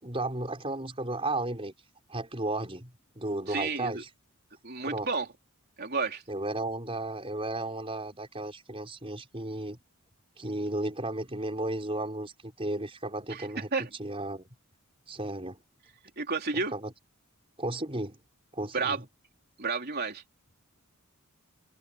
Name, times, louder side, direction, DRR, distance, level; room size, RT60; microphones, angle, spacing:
voice 1, 0.0-1.7 2.1-4.1 4.8-5.1 6.3-9.8 10.4-14.4 15.1-15.6 16.5-16.9 17.6-18.2 18.5-19.0, right 2 dB, 25° right, 5.4 m, -34 dB
voice 2, 3.5-4.0 4.6-5.3 5.8-6.2 13.3-13.9 16.2-16.7 18.7-19.0 19.6-20.2, right 4 dB, 45° right, 3.6 m, -31 dB
head